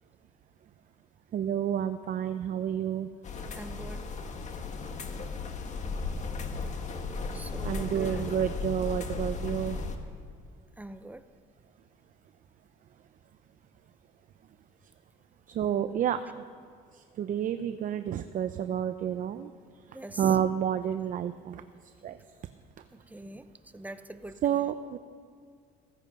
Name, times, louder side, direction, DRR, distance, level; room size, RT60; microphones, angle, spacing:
voice 1, 1.3-3.1 7.6-9.8 15.5-16.4 16.9-19.5 20.2-21.6 22.0-22.2 24.4-25.0, right 9 dB, 50° right, 10 dB, 0.6 m, -30 dB
sound 1, 3.2-10.0, left 4 dB, 45° left, 1.6 m, -35 dB
voice 2, 3.5-4.1 7.3-8.2 10.8-11.2 19.9-20.2 23.1-24.4, right 1 dB, 10° right, 10 dB, 0.7 m, -43 dB
16.0 x 14.5 x 5.4 m, 2.1 s
cardioid pair, 110°, 17 cm